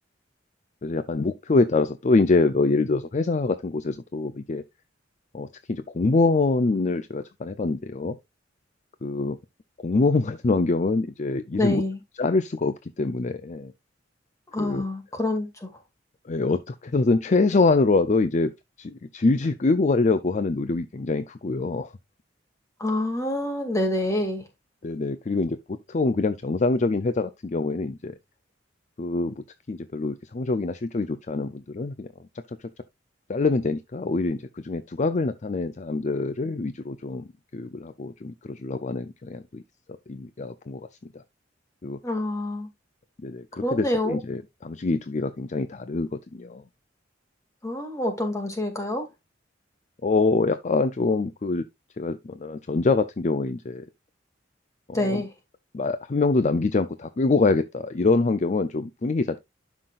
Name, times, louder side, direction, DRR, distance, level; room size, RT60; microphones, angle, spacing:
voice 1, 0.8-4.6 5.3-8.2 9.0-9.4 9.8-11.8 12.2-13.7 14.6-14.8 16.2-18.5 18.8-21.9 24.8-28.1 29.0-32.1 32.6-32.7 33.3-39.6 40.1-40.9 41.1-41.2 41.8-42.0 43.2-46.6 50.0-51.7 52.0-53.9 54.9-55.2 55.7-59.4, left 3 dB, 40° left, 0.5 m, -25 dB
voice 2, 11.6-12.0 14.5-15.7 22.8-24.4 42.0-42.7 43.6-44.2 47.6-49.1 54.9-55.3, left 1 dB, 15° left, 2.3 m, -27 dB
11.5 x 5.9 x 2.4 m
head